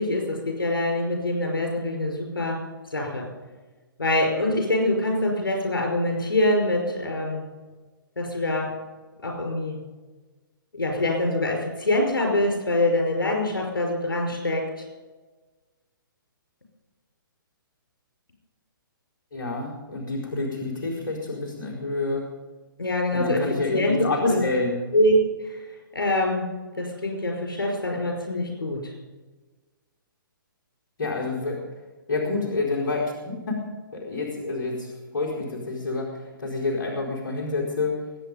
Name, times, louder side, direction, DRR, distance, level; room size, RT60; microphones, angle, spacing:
voice 1, 0.0-2.6 2.9-3.3 4.0-7.4 8.2-8.7 9.2-9.8 10.7-14.8 22.8-23.5 23.7-24.4 24.9-25.2 25.4-25.6 25.9-26.5 26.7-28.9, left 1 dB, 75° left, 1 dB, 5.4 m, -24 dB
voice 2, 19.3-22.3 23.1-24.8 31.0-31.6 32.1-33.6 33.9-38.0, left 3 dB, 55° left, -3 dB, 4.7 m, -28 dB
23.5 x 9.3 x 5.4 m, 1.3 s
figure-of-eight pair, 130°, 12 cm